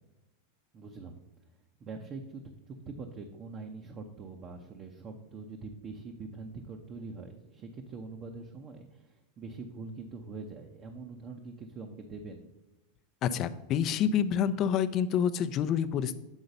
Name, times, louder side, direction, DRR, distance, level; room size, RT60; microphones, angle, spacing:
voice 1, 0.7-1.2 1.8-12.5, right 3 dB, 35° right, 3 dB, 0.8 m, -44 dB
voice 2, 13.2-16.2, left 8 dB, 40° left, 11 dB, 0.5 m, -28 dB
8.2 x 3.9 x 5.4 m, 1.0 s
supercardioid pair, 120°, 0 cm